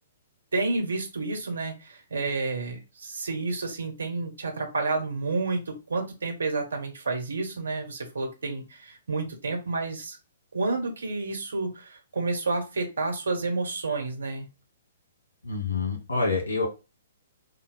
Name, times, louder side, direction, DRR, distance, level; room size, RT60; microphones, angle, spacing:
voice 1, 0.5-10.2 10.5-14.5, right 3 dB, 65° right, 3 dB, 1.2 m, -30 dB
voice 2, 15.4-16.7, left 4 dB, 75° left, 1 dB, 1.4 m, -27 dB
3.7 x 2.3 x 3.8 m, 0.29 s
figure-of-eight pair, 120°, 0 cm